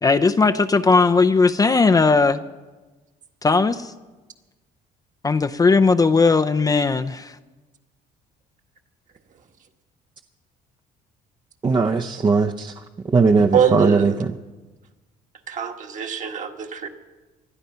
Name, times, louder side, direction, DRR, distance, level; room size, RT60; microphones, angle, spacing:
voice 1, 0.0-2.4 3.4-3.9 5.2-7.4, left 4 dB, 20° left, 9 dB, 0.5 m, -17 dB
voice 2, 11.6-14.3, right 4 dB, 25° right, 4 dB, 0.7 m, -19 dB
voice 3, 13.5-14.1 15.5-16.9, right 7 dB, 50° right, 4 dB, 1.7 m, -23 dB
19.5 x 12.0 x 5.6 m, 1.2 s
cardioid pair, 110°, 17 cm